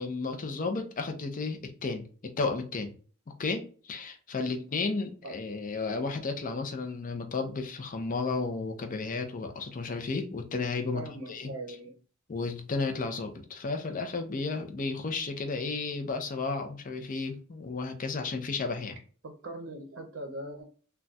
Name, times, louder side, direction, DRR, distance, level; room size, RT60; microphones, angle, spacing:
voice 1, 0.0-2.9 3.4-11.0 11.3-11.5 12.3-19.0, left 4 dB, 40° left, 0.5 m, -33 dB
voice 2, 10.9-12.0 19.2-20.6, right 2 dB, 55° right, 0.6 m, -41 dB
2.3 x 2.2 x 3.9 m
head